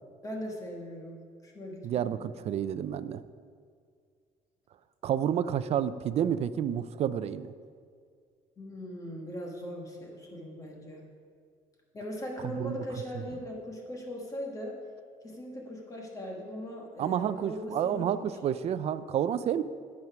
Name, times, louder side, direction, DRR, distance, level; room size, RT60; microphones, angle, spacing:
voice 1, 0.2-2.2 8.6-11.0 11.9-14.8 15.2-18.3, equal, 20° left, -1 dB, 1.4 m, -40 dB
voice 2, 1.8-3.2 5.0-7.5 12.4-12.8 17.0-19.6, right 9 dB, 45° right, 14 dB, 0.4 m, -30 dB
9.6 x 8.8 x 5.9 m, 2.1 s
cardioid pair, 165°, 15 cm